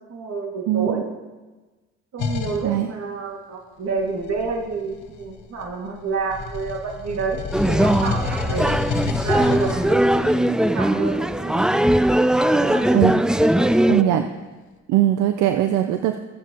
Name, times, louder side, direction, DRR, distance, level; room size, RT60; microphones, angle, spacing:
voice 1, 0.1-1.0 2.1-8.8 9.2-12.0 12.5-12.9 13.2-14.2, right 4 dB, 60° right, 1 dB, 2.0 m, -29 dB
voice 2, 0.7-1.0 2.6-2.9 12.9-13.1 13.9-14.3 14.9-16.2, right 12 dB, 80° right, 8 dB, 0.6 m, -20 dB
sound 1, 2.2-2.7 4.0-5.9 6.3-10.4, left 5 dB, 80° left, 1.0 m, -29 dB
sound 2, 7.5-14.0, right 1 dB, 5° right, 0.3 m, -19 dB
13.5 x 9.2 x 2.9 m, 1.2 s
supercardioid pair, 70°, 29 cm